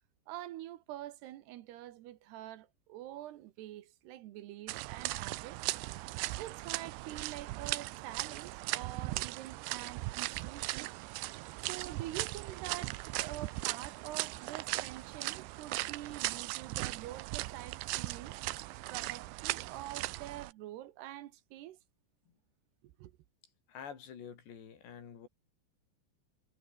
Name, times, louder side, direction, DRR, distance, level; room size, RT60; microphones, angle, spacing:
voice 1, 0.3-5.6 6.4-10.9 11.6-18.3 18.9-21.8 23.0-23.1, right 14 dB, 75° right, 3.1 m, -46 dB
sound 1, 4.7-20.5, right 19 dB, 90° right, 3.1 m, -38 dB
voice 2, 23.7-25.3, left 7 dB, 75° left, 6.0 m, -48 dB
omnidirectional pair, 5.0 m